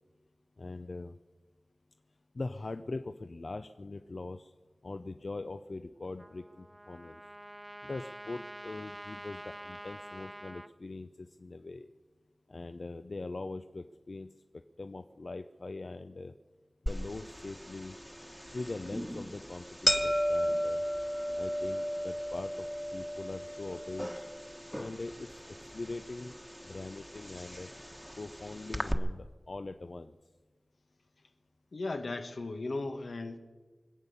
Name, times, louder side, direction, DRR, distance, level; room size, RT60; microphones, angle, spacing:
voice 1, 0.6-1.2 2.3-4.5 4.8-7.2 7.8-11.9 12.5-16.3 16.8-18.0 18.5-20.8 21.4-22.7 22.9-24.3 24.7-25.3 25.7-27.7 28.1-30.2, left 3 dB, 65° left, 8 dB, 0.6 m, -42 dB
Trumpet, 6.2-10.7, right 1 dB, 20° right, 0.9 m, -46 dB
sound 1, 16.9-28.9, equal, ahead, 1.2 m, -35 dB
voice 2, 31.7-33.4, left 2 dB, 85° left, 6 dB, 1.3 m, -36 dB
25.0 x 8.3 x 7.0 m, 1.3 s
wide cardioid pair, 65°, 0 cm